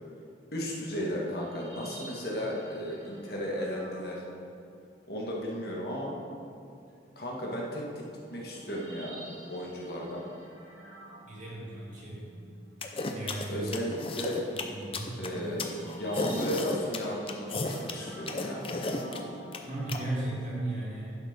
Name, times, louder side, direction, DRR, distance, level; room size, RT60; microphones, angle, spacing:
voice 1, 0.5-4.2 5.1-6.2 7.1-8.0 8.3-9.2 9.5-10.2 13.5-14.4 15.2-18.6, equal, 55° left, -3 dB, 1.7 m, -34 dB
sound 1, 1.0-4.9 7.2-20.7, right 1 dB, 75° right, 2.2 m, -50 dB
voice 2, 11.2-12.2 13.1-13.7 14.7-15.2 19.6-21.2, right 1 dB, 40° right, -7 dB, 2.7 m, -35 dB
sound 2, 12.8-20.0, left 2 dB, 30° left, 0.6 m, -34 dB
11.0 x 6.5 x 5.2 m, 2.5 s
head